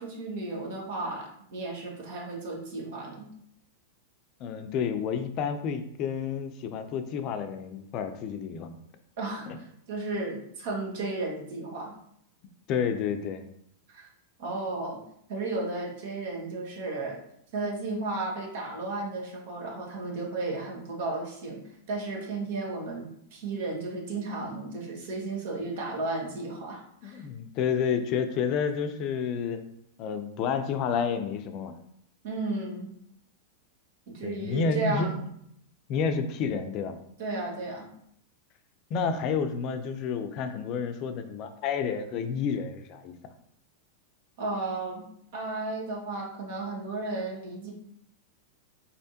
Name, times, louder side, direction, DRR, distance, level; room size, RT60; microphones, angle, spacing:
voice 1, 0.0-3.3 9.2-11.9 13.9-14.1 14.4-15.0 15.3-17.2 17.5-21.6 21.9-27.2 32.2-32.9 34.1-35.1 37.2-37.9 44.4-45.0 45.3-47.7, right 2 dB, 65° right, -1 dB, 1.5 m, -34 dB
voice 2, 4.4-8.7 9.5-9.6 12.7-13.5 27.0-29.6 30.0-31.7 34.2-35.3 35.9-36.9 38.9-43.2, left 6 dB, 45° left, 8 dB, 0.5 m, -30 dB
4.2 x 3.3 x 2.8 m, 0.71 s
hypercardioid pair, 110°, 0 cm